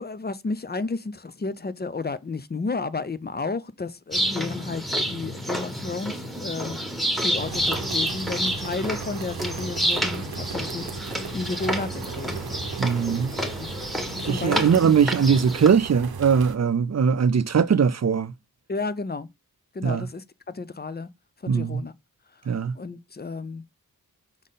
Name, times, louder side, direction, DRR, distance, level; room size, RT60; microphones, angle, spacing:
voice 1, 0.0-12.3 13.4-13.7 14.2-14.7 18.7-19.3 19.7-21.1 21.4-21.9 22.6-23.6, left 3 dB, 25° left, 0.5 m, -32 dB
sound 1, 4.1-15.7, equal, ahead, 1.7 m, -29 dB
sound 2, 7.4-16.6, right 6 dB, 80° right, 0.7 m, -37 dB
voice 2, 12.8-13.3 14.2-18.3 19.8-20.1 21.5-21.8 22.5-22.7, right 6 dB, 45° right, 0.5 m, -21 dB
6.4 x 3.6 x 4.0 m
cardioid pair, 40°, 37 cm